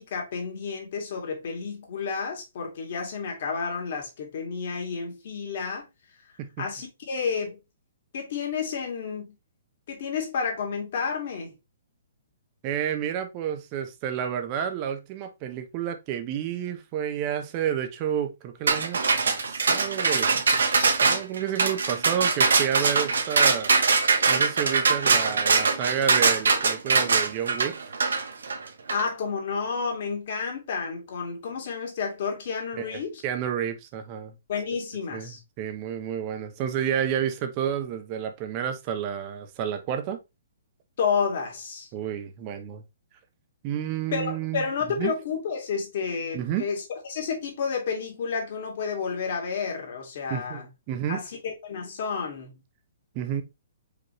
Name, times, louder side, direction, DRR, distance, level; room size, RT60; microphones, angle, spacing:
voice 1, 0.0-5.9 6.6-7.6 8.1-9.3 9.9-11.5 28.9-33.2 34.5-35.4 41.0-41.9 44.1-46.8 47.1-50.7 51.1-52.6, left 5 dB, 55° left, 2.0 m, -30 dB
voice 2, 12.6-23.7 24.3-27.9 32.8-34.3 35.1-40.2 41.9-42.8 43.6-44.6 45.0-45.1 46.3-46.7 50.3-51.2 53.1-53.4, right 9 dB, 30° right, 0.8 m, -30 dB
sound 1, 18.7-29.0, right 4 dB, 85° right, 0.9 m, -22 dB
5.0 x 3.0 x 3.0 m
hypercardioid pair, 150°, 0 cm